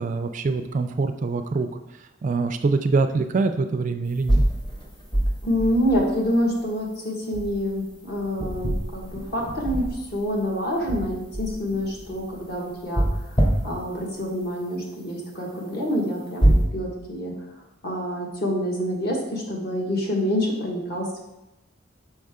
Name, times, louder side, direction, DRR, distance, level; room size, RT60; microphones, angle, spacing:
voice 1, 0.0-1.7 2.2-4.4, right 3 dB, 40° right, 8 dB, 0.3 m, -24 dB
sound 1, 4.2-6.4 7.3-7.6 7.9-10.4 10.8-12.3 12.9-14.0 16.4-16.6, right 1 dB, 25° left, 1.0 m, -24 dB
voice 2, 5.4-17.3 17.8-21.2, equal, 50° left, -2 dB, 1.4 m, -27 dB
6.4 x 4.7 x 3.6 m, 0.96 s
head